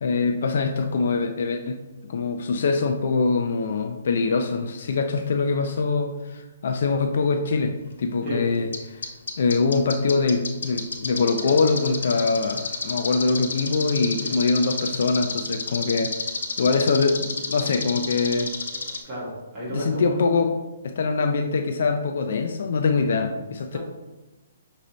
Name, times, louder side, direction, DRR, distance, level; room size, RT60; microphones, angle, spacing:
voice 1, 0.0-9.0 9.4-16.2 16.6-18.5 19.7-20.5 20.8-23.8, left 4 dB, 55° left, 5 dB, 0.4 m, -23 dB
sound 1, 8.7-8.8 9.0-19.0, left 5 dB, 80° left, 0.8 m, -28 dB
voice 2, 19.0-20.2 23.7-23.8, equal, 15° right, -8 dB, 1.3 m, -32 dB
6.1 x 2.7 x 3.0 m, 1.1 s
hypercardioid pair, 170°, 0 cm